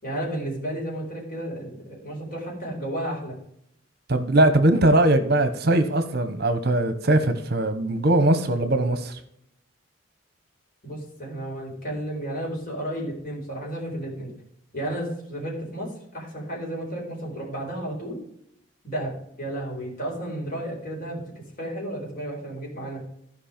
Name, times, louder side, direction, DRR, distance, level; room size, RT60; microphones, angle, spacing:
voice 1, 0.0-3.4 10.8-14.3 14.7-18.2 18.8-21.2 21.6-23.0, right 1 dB, 45° left, 4.6 m, -32 dB
voice 2, 4.1-9.2, right 1 dB, 50° right, 0.9 m, -20 dB
14.5 x 5.3 x 5.1 m
head